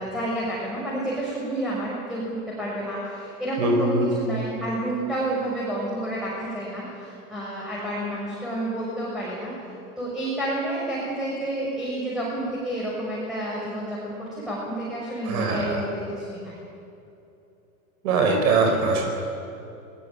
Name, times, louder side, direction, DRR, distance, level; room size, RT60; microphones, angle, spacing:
voice 1, 0.0-9.5 10.0-16.5, right 1 dB, ahead, -7 dB, 6.6 m, -30 dB
voice 2, 3.6-4.1 15.3-15.8 18.0-19.0, right 3 dB, 65° right, 3 dB, 5.3 m, -22 dB
23.0 x 19.5 x 9.1 m, 2.8 s
hypercardioid pair, 120°, 45 cm